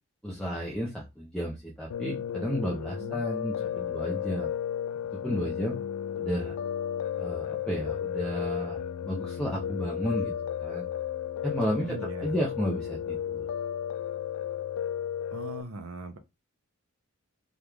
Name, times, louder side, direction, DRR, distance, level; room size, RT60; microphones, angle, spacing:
voice 1, 0.2-4.5 5.1-5.8 6.2-6.6 7.2-10.3 10.6-10.8 11.4-13.4, equal, 5° left, 0.5 m, -32 dB
Piano, 1.9-15.6, left 9 dB, 80° left, 0.3 m, -33 dB
voice 2, 11.7-12.3 15.3-16.2, right 2 dB, 70° right, 0.5 m, -40 dB
3.0 x 2.4 x 3.4 m
head